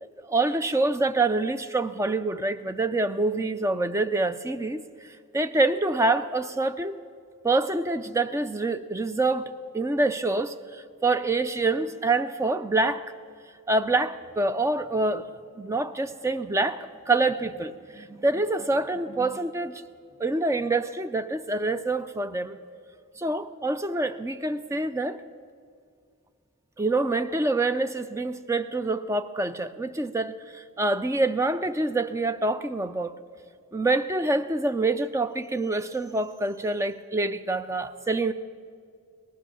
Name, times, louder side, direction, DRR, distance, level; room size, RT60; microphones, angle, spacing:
voice 1, 0.0-4.8 5.3-7.0 7.4-13.0 13.7-15.2 15.6-19.7 20.2-22.6 23.2-25.2 26.8-33.2 33.7-38.3, right 2 dB, 15° right, 11 dB, 0.4 m, -26 dB
18.5 x 11.0 x 7.1 m, 2.1 s
head